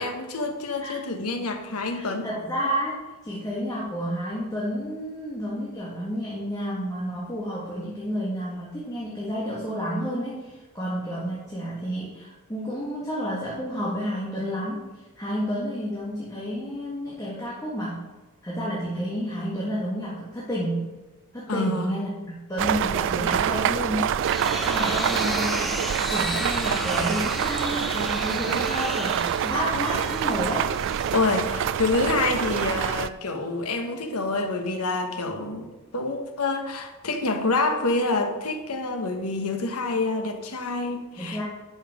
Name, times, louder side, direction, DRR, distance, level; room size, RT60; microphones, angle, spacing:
voice 1, 0.0-2.3 21.5-21.9 31.1-41.4, left 3 dB, 80° left, 5 dB, 1.2 m, -27 dB
voice 2, 1.9-18.0 18.4-20.9 21.3-25.8 26.1-30.7 41.2-41.4, equal, 15° left, -6 dB, 1.8 m, -30 dB
sound 1, 22.6-33.1, right 9 dB, 60° right, 0.3 m, -26 dB
sound 2, 23.9-31.7, equal, ahead, 0.7 m, -33 dB
11.0 x 5.6 x 5.0 m, 1.2 s
head